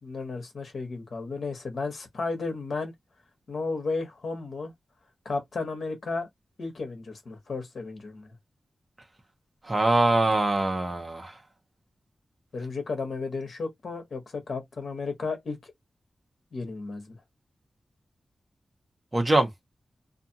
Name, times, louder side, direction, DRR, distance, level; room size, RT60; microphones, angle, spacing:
voice 1, 0.0-2.9 3.5-4.7 5.2-6.3 6.6-8.3 12.5-15.7 16.5-17.2, left 3 dB, 65° left, 1.0 m, -33 dB
voice 2, 9.6-11.4 19.1-19.5, right 2 dB, 20° right, 0.8 m, -23 dB
2.6 x 2.4 x 2.7 m
wide cardioid pair, 135°, 0 cm